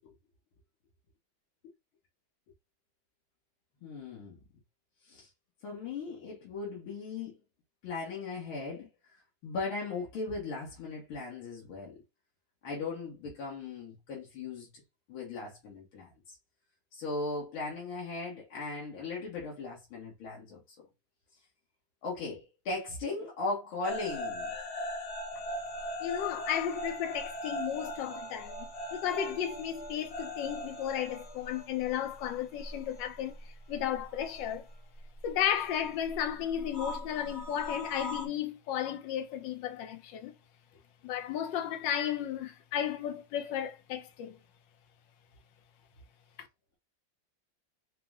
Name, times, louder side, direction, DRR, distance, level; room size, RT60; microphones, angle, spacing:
voice 1, 3.8-4.4 5.1-5.3 5.6-7.4 7.8-8.9 9.4-12.0 12.6-14.7 15.1-16.1 16.9-20.6 22.0-24.5, left 3 dB, 90° left, 2.1 m, -38 dB
sound 1, 23.8-33.0 33.3-34.5 35.7-38.3, left 1 dB, 60° left, 0.7 m, -39 dB
voice 2, 26.0-34.7 35.2-40.3 41.0-44.4, left 10 dB, 75° left, 1.3 m, -34 dB
4.7 x 2.1 x 3.5 m
omnidirectional pair, 2.2 m